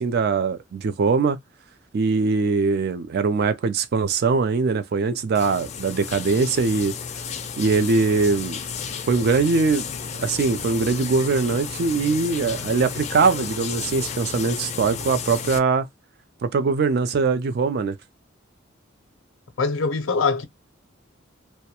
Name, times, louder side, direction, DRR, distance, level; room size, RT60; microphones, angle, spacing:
voice 1, 0.0-1.4 1.9-6.9 7.6-8.6 9.1-9.9 10.2-15.9 16.4-18.0, right 4 dB, 50° right, 0.3 m, -22 dB
Shower from outside door, 5.3-15.6, left 6 dB, 35° left, 0.4 m, -33 dB
voice 2, 19.6-20.4, left 4 dB, 85° left, 0.5 m, -22 dB
2.2 x 2.1 x 2.8 m
head